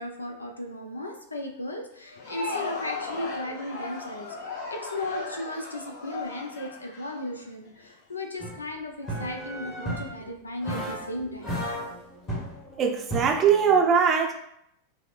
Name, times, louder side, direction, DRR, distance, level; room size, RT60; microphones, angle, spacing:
voice 1, 0.0-4.4 4.7-11.7, left 1 dB, 80° left, 4 dB, 0.5 m, -36 dB
Crowd, 2.0-7.9, left 4 dB, 55° left, 1.4 m, -36 dB
sound 1, 8.4-8.6 9.0-10.2 10.6-11.1 11.4-13.8, equal, 25° left, 1.2 m, -34 dB
voice 2, 12.8-14.5, right 6 dB, 30° right, 3 dB, 0.5 m, -21 dB
5.5 x 2.1 x 2.4 m, 0.74 s
figure-of-eight pair, 90°, 0 cm